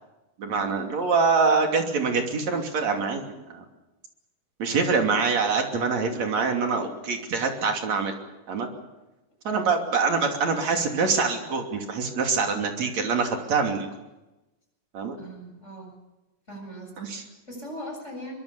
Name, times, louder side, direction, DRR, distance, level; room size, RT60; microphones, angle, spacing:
voice 1, 0.4-3.6 4.6-8.1 8.5-8.7 9.5-13.9 14.9-15.2 17.0-17.3, right 4 dB, 50° right, 3 dB, 4.0 m, -25 dB
voice 2, 15.2-15.9 16.5-18.3, right 1 dB, 20° left, 1 dB, 7.9 m, -40 dB
23.5 x 23.0 x 7.0 m, 1.0 s
omnidirectional pair, 4.1 m